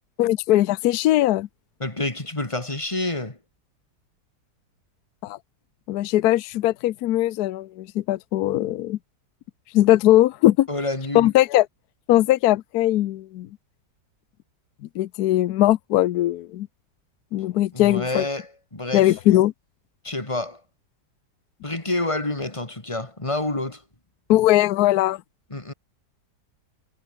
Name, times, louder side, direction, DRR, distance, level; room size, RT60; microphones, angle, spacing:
voice 1, 0.2-1.5 5.2-5.4 5.9-9.0 9.7-10.7 11.1-11.6 12.1-13.5 15.0-16.7 17.3-18.2 18.9-19.5 24.3-25.2, left 14 dB, 70° left, 1.1 m, -20 dB
voice 2, 1.8-3.4 10.7-11.3 17.7-19.2 20.0-20.6 21.6-23.8 25.5-25.7, left 2 dB, 20° left, 2.7 m, -28 dB
omnidirectional pair, 1.8 m